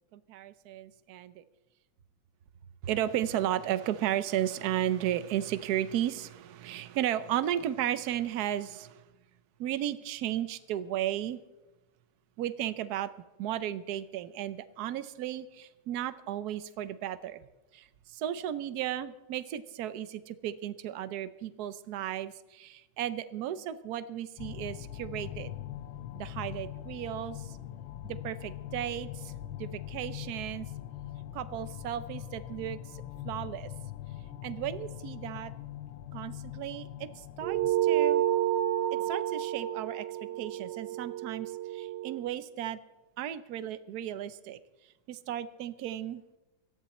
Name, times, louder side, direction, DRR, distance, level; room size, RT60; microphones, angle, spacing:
voice 1, 0.1-1.4 2.8-9.0 9.6-11.4 12.4-13.1 13.4-17.5 17.7-25.5 26.1-27.6 28.0-29.3 29.6-30.7 31.3-33.7 34.4-35.5 36.1-38.2 38.9-42.8 43.2-44.6 45.1-46.2, right 11 dB, 65° right, 14 dB, 1.1 m, -34 dB
sound 1, 24.4-37.7, left 12 dB, 90° left, 1.6 m, -42 dB
sound 2, 37.4-42.2, right 12 dB, 85° right, 2.2 m, -30 dB
18.0 x 13.5 x 4.2 m, 1.0 s
omnidirectional pair, 2.1 m